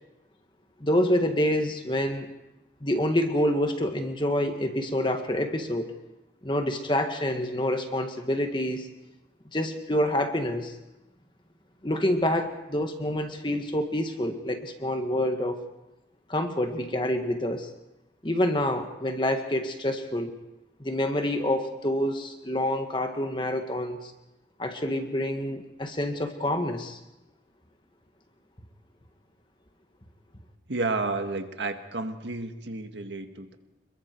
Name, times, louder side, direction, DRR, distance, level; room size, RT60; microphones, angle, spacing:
voice 1, 0.8-2.3 2.8-5.9 6.4-8.9 9.5-10.7 11.8-15.6 16.3-17.7 18.2-20.3 20.8-24.1 24.6-27.0, left 1 dB, 25° left, 5 dB, 1.8 m, -27 dB
voice 2, 30.7-33.5, right 3 dB, 85° right, 6 dB, 1.8 m, -31 dB
28.5 x 21.5 x 4.7 m, 0.96 s
head